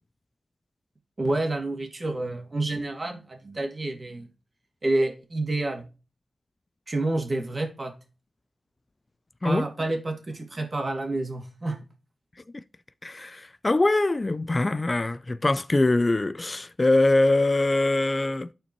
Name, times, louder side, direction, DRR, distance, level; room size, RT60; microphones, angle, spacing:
voice 1, 1.2-4.3 4.8-5.9 6.9-8.0 9.4-11.8, right 2 dB, 45° right, 2.0 m, -29 dB
voice 2, 13.0-18.5, left 2 dB, 35° left, 0.4 m, -23 dB
12.5 x 4.4 x 2.9 m
wide cardioid pair, 70°, 0 cm